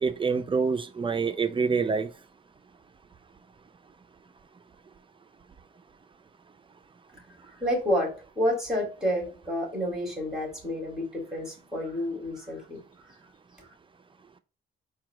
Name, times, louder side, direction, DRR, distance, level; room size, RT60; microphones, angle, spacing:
voice 1, 0.0-2.1, right 5 dB, 25° right, 0.5 m, -26 dB
voice 2, 7.6-12.8 13.6-13.7, equal, 5° right, 2.5 m, -29 dB
4.5 x 2.3 x 4.7 m
cardioid pair, 90°, 20 cm